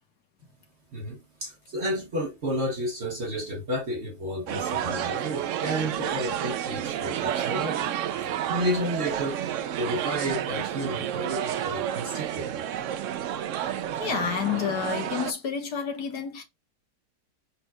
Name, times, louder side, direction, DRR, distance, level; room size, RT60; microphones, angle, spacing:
voice 1, 0.9-7.9 8.2-9.4 9.8-12.6, equal, 50° right, 1.0 m, -31 dB
sound 1, 4.5-15.3, right 10 dB, 75° right, 0.7 m, -30 dB
voice 2, 14.0-16.4, left 7 dB, 70° left, 1.7 m, -29 dB
5.4 x 4.2 x 2.3 m
omnidirectional pair, 1.8 m